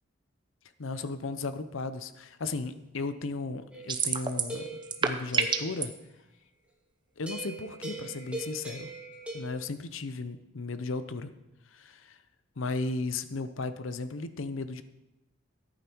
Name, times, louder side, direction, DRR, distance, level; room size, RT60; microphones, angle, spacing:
voice 1, 0.8-4.7 5.0-5.9 7.2-8.9 9.3-11.3 11.7-12.2 12.6-14.8, left 3 dB, 80° left, 12 dB, 0.7 m, -35 dB
sound 1, 3.7-5.8 7.3-9.4, right 2 dB, 5° right, 1.7 m, -41 dB
sound 2, 3.9-4.6 4.8-5.8, right 5 dB, 25° right, 0.7 m, -27 dB
14.0 x 8.9 x 4.5 m, 0.95 s
head